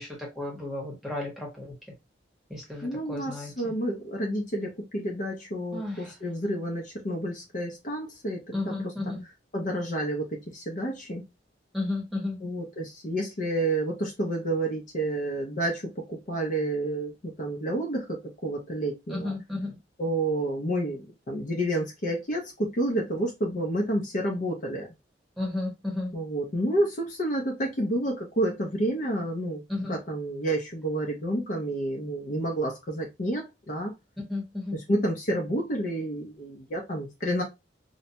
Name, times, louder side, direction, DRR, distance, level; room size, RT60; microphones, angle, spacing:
voice 1, 0.0-1.7 2.5-3.7 5.7-6.1 8.5-9.2 11.7-12.4 19.1-19.8 25.4-26.1 29.7-30.0 34.3-34.8, left 2 dB, ahead, 1.0 m, -33 dB
voice 2, 2.8-8.7 9.5-11.2 12.4-19.3 20.0-24.9 26.1-29.6 29.9-33.9 34.9-37.4, right 1 dB, 45° left, 0.6 m, -29 dB
2.7 x 2.2 x 2.6 m
head